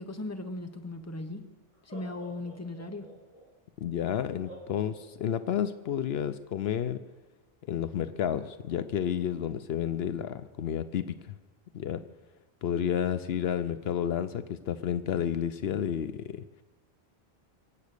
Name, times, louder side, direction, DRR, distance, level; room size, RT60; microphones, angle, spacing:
voice 1, 0.0-1.5 1.8-3.1, left 2 dB, 15° left, 7 dB, 1.1 m, -38 dB
Laughter, 1.7-3.5 4.4-5.7, right 1 dB, 35° left, 3.8 m, -49 dB
voice 2, 3.8-7.0 7.7-11.3 11.7-12.0 12.6-16.4, left 9 dB, 75° left, 12 dB, 0.9 m, -31 dB
24.0 x 8.4 x 6.7 m, 1.2 s
omnidirectional pair, 1.1 m